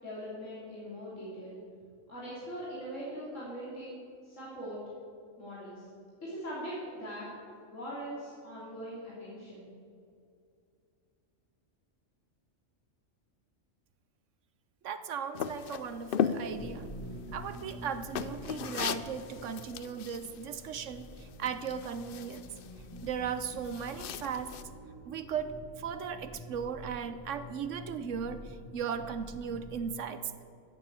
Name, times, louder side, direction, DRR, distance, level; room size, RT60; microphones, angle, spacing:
voice 1, 0.0-1.6 2.1-4.8 5.4-5.9 6.2-7.3 7.7-9.7, equal, 75° left, -8 dB, 3.6 m, -41 dB
voice 2, 14.8-16.9 17.3-21.1 21.4-22.5 23.0-24.5 25.1-28.4 28.7-30.2, right 7 dB, 75° right, 11 dB, 1.1 m, -37 dB
sound 1, 15.3-24.6, left 8 dB, 60° left, 0.6 m, -38 dB
sound 2, 16.5-29.9, equal, 10° left, 1.8 m, -48 dB
14.5 x 7.5 x 8.2 m, 2.4 s
omnidirectional pair, 1.3 m